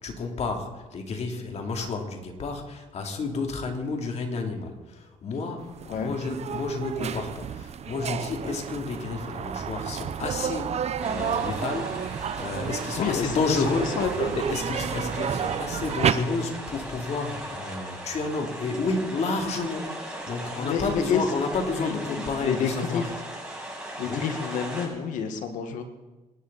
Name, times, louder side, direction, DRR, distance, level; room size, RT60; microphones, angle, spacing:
voice 1, 0.0-13.9 14.3-23.1 24.0-24.3, left 3 dB, 60° left, 2 dB, 3.2 m, -31 dB
sound 1, 5.6-16.1, right 8 dB, 55° right, 1.0 m, -31 dB
sound 2, 11.0-24.9, right 1 dB, 5° right, 6.7 m, -38 dB
voice 2, 13.0-14.4 20.5-21.2 21.7-23.1 24.0-25.8, left 7 dB, 85° left, 7 dB, 1.8 m, -29 dB
27.0 x 12.0 x 4.2 m, 1.1 s
cardioid pair, 75°, 13 cm